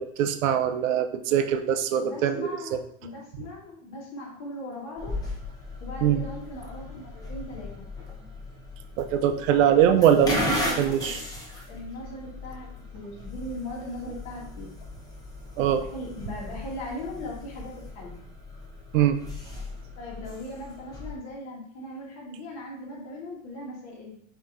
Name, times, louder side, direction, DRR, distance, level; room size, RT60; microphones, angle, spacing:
voice 1, 0.0-2.5 6.0-6.2 9.0-10.4 10.8-11.2 15.6-15.8 18.9-19.2, right 9 dB, 80° right, 9 dB, 0.6 m, -22 dB
voice 2, 2.0-2.7 3.0-5.2 5.8-7.9 9.6-11.2 11.7-12.7 12.9-14.7 15.8-18.2 20.0-24.2, left 1 dB, 40° left, -2 dB, 1.5 m, -38 dB
sound 1, 5.0-21.2, left 1 dB, 10° left, 0.7 m, -37 dB
5.4 x 2.9 x 2.6 m, 0.64 s
supercardioid pair, 130°, 39 cm